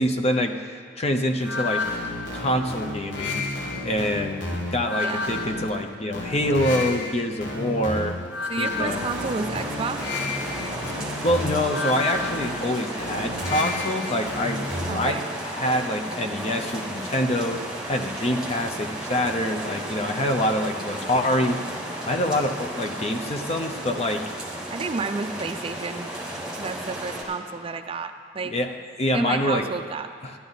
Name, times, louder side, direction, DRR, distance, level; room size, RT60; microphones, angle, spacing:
voice 1, 0.0-1.8 2.3-3.5 3.8-4.4 4.7-8.2 8.6-9.1 11.2-14.6 14.9-21.6 22.1-24.3 28.4-29.7 30.2-30.3, left 1 dB, 35° left, 5 dB, 0.7 m, -25 dB
sound 1, 1.4-15.2, left 2 dB, 70° left, 1.5 m, -31 dB
voice 2, 8.5-10.0 14.9-15.3 24.7-26.1 26.6-28.5 29.1-30.1, right 4 dB, 30° right, 8 dB, 0.4 m, -31 dB
sound 2, 8.9-27.2, right 1 dB, 5° right, 2.1 m, -34 dB
14.0 x 11.0 x 4.0 m, 2.1 s
head